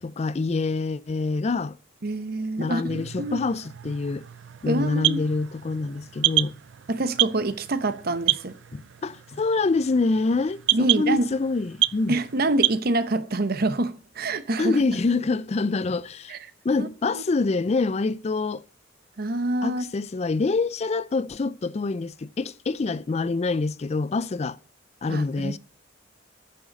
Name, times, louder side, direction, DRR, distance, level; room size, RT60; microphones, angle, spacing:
voice 1, 0.0-1.8 2.6-4.2 4.6-6.5 8.7-12.2 14.6-16.4 16.6-18.6 19.6-24.6 25.0-25.6, left 3 dB, 35° left, 0.4 m, -26 dB
voice 2, 2.0-3.4 4.7-5.2 6.9-8.6 10.7-11.3 12.1-14.8 16.3-16.4 16.8-17.2 19.2-19.8 25.1-25.5, right 2 dB, 50° right, 0.9 m, -26 dB
sound 1, 2.9-12.8, right 16 dB, 65° right, 0.4 m, -29 dB
10.5 x 6.5 x 5.2 m
head